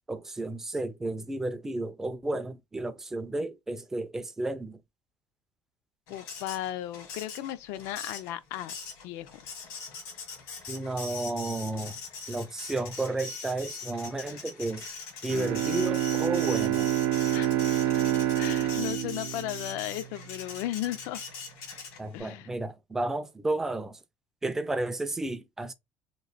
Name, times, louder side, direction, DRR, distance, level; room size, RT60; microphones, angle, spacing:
voice 1, 0.1-4.8 10.7-12.0 12.3-14.9 15.2-16.9 22.0-24.0 24.4-25.7, right 2 dB, 10° right, 0.3 m, -32 dB
Printer, 6.1-22.2, left 5 dB, 85° left, 1.3 m, -42 dB
voice 2, 6.1-8.7 9.0-9.4 17.3-17.5 18.4-21.2 22.1-22.5, left 14 dB, 65° left, 0.4 m, -35 dB
Bowed string instrument, 15.3-20.2, right 12 dB, 85° right, 0.7 m, -28 dB
3.0 x 2.5 x 3.9 m
cardioid pair, 165°, 5 cm